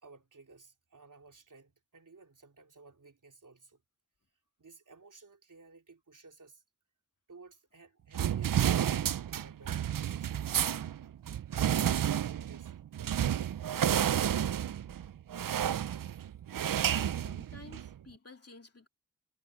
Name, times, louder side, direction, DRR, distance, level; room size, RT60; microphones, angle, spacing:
voice 1, 0.0-3.8 4.6-6.6 7.3-10.9 11.5-13.5, right 3 dB, 70° right, 3.4 m, -56 dB
sound 1, 8.1-17.9, right 10 dB, 90° right, 0.5 m, -31 dB
voice 2, 16.9-18.9, left 3 dB, 50° left, 2.9 m, -52 dB
wide cardioid pair, 85°, 32 cm